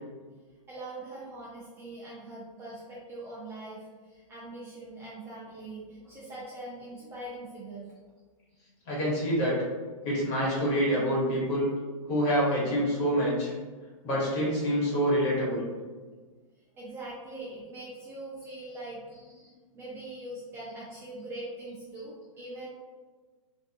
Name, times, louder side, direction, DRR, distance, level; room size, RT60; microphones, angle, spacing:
voice 1, 0.7-7.9 16.8-19.2 19.7-22.7, right 2 dB, 15° right, -7 dB, 0.4 m, -42 dB
voice 2, 8.8-9.5 10.0-11.7 12.1-13.5 14.0-15.7, equal, 35° left, -7 dB, 1.4 m, -26 dB
2.6 x 2.2 x 2.6 m, 1.4 s
hypercardioid pair, 140°, 18 cm